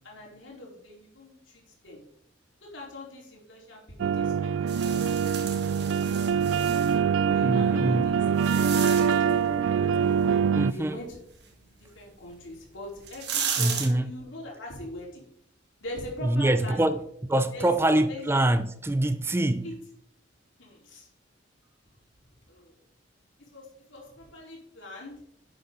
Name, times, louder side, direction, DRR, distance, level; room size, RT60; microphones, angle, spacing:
voice 1, 0.0-1.4 1.8-2.0 2.6-6.8 7.3-10.1 10.7-11.2 11.8-15.2 15.8-16.9 17.5-17.7 18.1-18.3 19.6-19.7 20.6-21.1 22.5-22.8 23.5-25.1, left 1 dB, 85° left, 4.2 m, -43 dB
sound 1, 4.0-10.7, right 7 dB, 80° right, 0.3 m, -24 dB
sound 2, 4.7-7.0 7.7-9.3 12.3-12.4 12.9-13.9, right 7 dB, 60° right, 2.1 m, -34 dB
voice 2, 7.4-8.1 10.5-11.0 13.6-14.1 16.2-17.0 17.3-19.7, right 1 dB, 15° right, 0.5 m, -25 dB
11.0 x 8.8 x 3.9 m
head